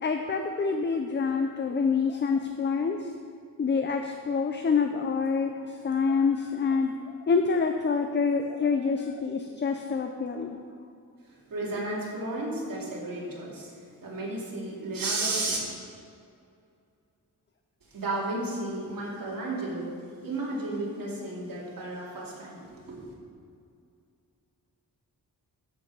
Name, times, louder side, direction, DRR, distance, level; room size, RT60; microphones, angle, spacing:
voice 1, 0.0-3.0 3.6-6.9 7.3-10.6, left 5 dB, 30° left, 5 dB, 0.5 m, -26 dB
voice 2, 11.2-13.7 14.0-15.6 17.9-23.1, right 2 dB, 70° right, -5 dB, 2.8 m, -33 dB
13.5 x 5.3 x 5.4 m, 2.4 s
wide cardioid pair, 165°, 35 cm